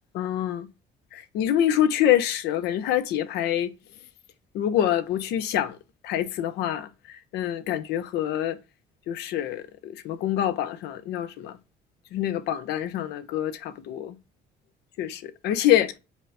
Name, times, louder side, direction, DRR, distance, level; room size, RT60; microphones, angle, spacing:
voice 1, 0.1-0.7 1.1-3.7 4.5-5.8 6.0-8.6 9.1-11.6 12.1-14.2 15.0-15.9, left 11 dB, 85° left, 0.7 m, -26 dB
5.2 x 2.2 x 4.7 m
cardioid pair, 110°, 17 cm